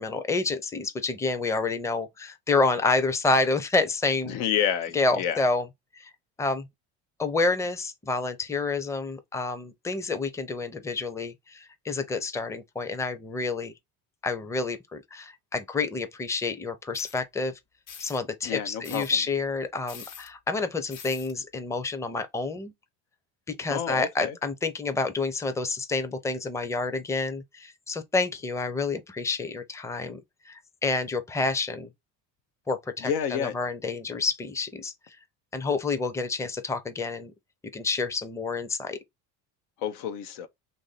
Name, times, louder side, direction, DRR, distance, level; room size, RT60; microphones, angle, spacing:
voice 1, 0.0-4.4 4.9-5.7 5.9-6.1 6.4-6.7 7.2-13.7 14.2-17.5 18.0-22.7 23.5-30.2 30.5-31.9 32.7-35.2 35.5-37.3 37.7-39.0, left 3 dB, 5° left, 0.5 m, -28 dB
voice 2, 4.3-5.5 18.4-19.1 23.7-24.4 33.0-33.5 39.8-40.5, left 9 dB, 80° left, 0.8 m, -29 dB
sound 1, 16.9-17.2 17.9-18.2 18.8-19.2 19.9-20.3 20.9-21.3, left 7 dB, 50° left, 0.9 m, -44 dB
3.0 x 2.7 x 3.9 m
supercardioid pair, 85°, 40 cm